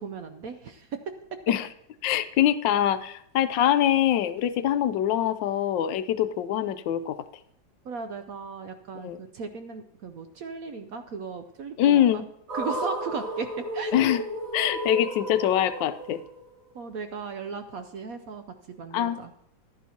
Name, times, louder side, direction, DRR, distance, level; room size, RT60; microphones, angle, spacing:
voice 1, 0.0-1.4 7.8-12.2 12.5-13.9 16.7-19.3, right 5 dB, 65° right, 8 dB, 0.9 m, -36 dB
voice 2, 2.0-7.2 9.0-9.2 11.8-12.2 13.9-14.2 14.5-16.2 18.9-19.2, left 11 dB, 80° left, 12 dB, 1.3 m, -24 dB
sound 1, 12.5-16.7, right 1 dB, 45° right, 3.1 m, -33 dB
14.5 x 11.0 x 2.8 m, 0.72 s
omnidirectional pair, 2.0 m